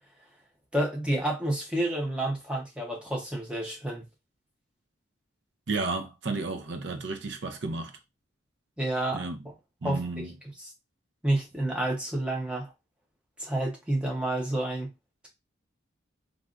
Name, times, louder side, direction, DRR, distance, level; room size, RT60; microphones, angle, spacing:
voice 1, 0.7-4.0 8.8-9.2 9.8-10.2 10.6-10.7 11.2-12.7 13.4-14.9, right 1 dB, 5° right, 0.7 m, -29 dB
voice 2, 5.7-7.9 9.1-9.4 9.8-10.3, right 3 dB, 65° right, 0.6 m, -32 dB
3.3 x 2.4 x 2.4 m
head